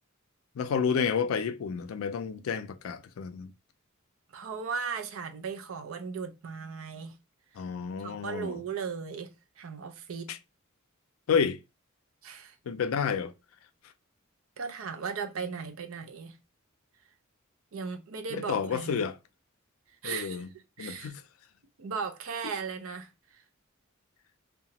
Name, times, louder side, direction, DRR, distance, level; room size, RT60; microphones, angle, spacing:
voice 1, 0.6-3.5 7.6-8.6 10.3-10.4 11.3-11.6 12.7-13.3 18.3-19.2 20.0-20.5 20.8-21.2, left 6 dB, 75° left, 0.4 m, -30 dB
voice 2, 4.3-7.1 8.0-10.3 12.2-12.6 14.6-16.4 17.7-19.0 20.0-20.4 20.8-21.1 21.8-23.4, right 6 dB, 75° right, 0.5 m, -37 dB
2.8 x 2.2 x 2.8 m
head